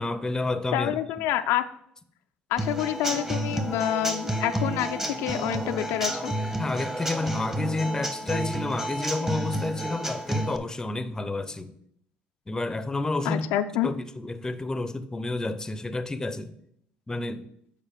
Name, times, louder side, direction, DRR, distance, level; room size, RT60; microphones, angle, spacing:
voice 1, 0.0-1.0 6.6-11.7 12.5-13.5 13.8-16.6 17.1-17.4, left 2 dB, 15° left, 0.6 m, -30 dB
voice 2, 0.7-1.6 2.5-6.3 13.2-13.9, left 12 dB, 80° left, 0.4 m, -27 dB
Human voice / Acoustic guitar / Drum, 2.6-10.6, right 1 dB, 10° right, 1.0 m, -30 dB
7.3 x 4.9 x 5.1 m
supercardioid pair, 95°, 4 cm